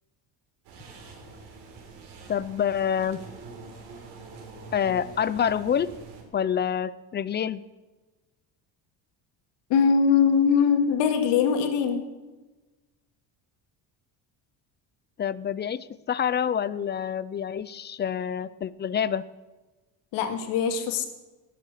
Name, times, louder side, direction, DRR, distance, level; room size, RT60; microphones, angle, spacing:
sound 1, 0.6-6.2, right 4 dB, 85° right, 3.8 m, -45 dB
voice 1, 2.3-3.2 4.7-5.9 6.3-7.6 15.2-19.2, left 8 dB, 25° left, 17 dB, 0.4 m, -27 dB
voice 2, 9.7-12.0 20.1-21.1, left 6 dB, 90° left, 6 dB, 2.1 m, -22 dB
18.5 x 7.6 x 6.6 m, 1.2 s
cardioid pair, 145°, 41 cm